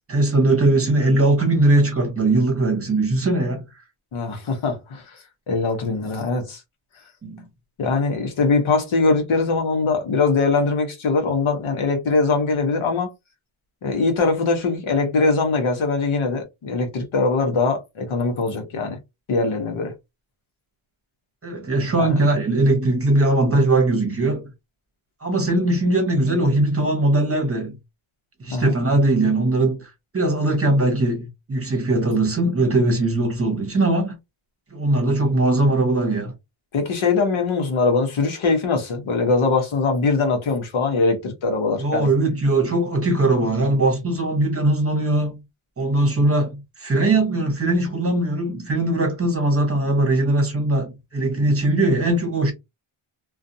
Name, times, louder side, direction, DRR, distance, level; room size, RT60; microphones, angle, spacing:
voice 1, 0.1-3.6 7.2-7.4 21.4-24.5 25.2-27.7 28.4-34.1 34.7-36.3 41.8-45.4 45.8-52.5, right 2 dB, 30° right, 0.9 m, -20 dB
voice 2, 4.1-5.2 5.5-6.6 7.8-13.1 13.8-19.0 19.3-19.9 22.0-22.1 28.5-28.8 36.7-42.1, left 4 dB, 70° left, 1.0 m, -22 dB
2.5 x 2.3 x 2.6 m
wide cardioid pair, 160°, 50 cm